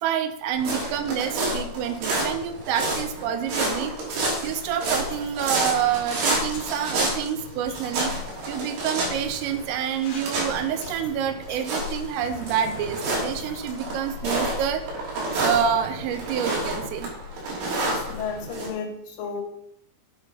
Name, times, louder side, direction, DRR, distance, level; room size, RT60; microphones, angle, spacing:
voice 1, 0.0-3.9 4.4-8.2 8.5-17.1, right 8 dB, 85° right, 9 dB, 3.3 m, -28 dB
sound 1, 0.5-18.7, right 1 dB, 65° right, 5.3 m, -30 dB
sound 2, 4.4-13.9 14.2-14.9 15.3-15.4, left 4 dB, 55° left, 3.5 m, -46 dB
voice 2, 17.6-19.4, left 5 dB, 70° left, 2 dB, 3.6 m, -33 dB
8.8 x 7.8 x 5.5 m, 0.73 s
omnidirectional pair, 6.0 m